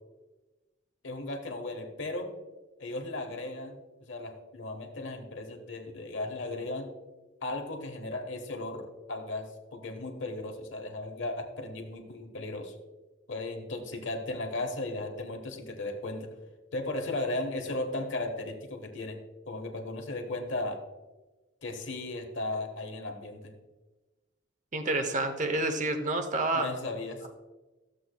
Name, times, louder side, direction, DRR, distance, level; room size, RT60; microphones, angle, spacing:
voice 1, 1.0-2.3 2.8-6.9 7.4-12.7 13.3-16.3 16.7-19.2 19.4-20.8 21.6-23.5 26.5-27.2, left 2 dB, 75° left, 3 dB, 1.2 m, -36 dB
voice 2, 24.7-26.7, right 2 dB, 40° right, 7 dB, 0.8 m, -29 dB
13.0 x 7.5 x 2.3 m, 1.2 s
head